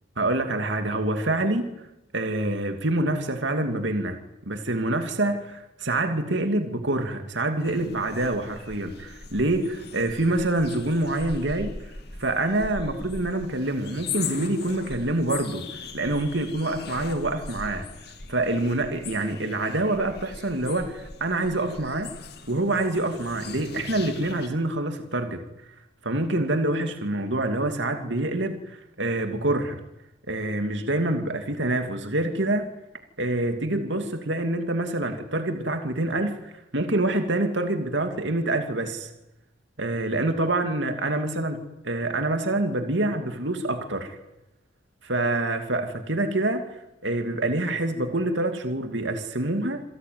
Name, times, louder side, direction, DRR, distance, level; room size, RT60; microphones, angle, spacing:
voice 1, 0.2-1.6 2.1-4.2 4.5-11.7 12.2-17.9 18.3-22.1 22.5-25.4 26.0-29.8 30.3-32.7 33.2-39.1 39.8-41.6 41.8-44.2 45.0-49.8, right 2 dB, 70° right, 6 dB, 2.7 m, -26 dB
sound 1, 7.6-24.5, left 4 dB, 55° left, 2.6 m, -40 dB
28.0 x 18.0 x 9.5 m, 0.92 s
head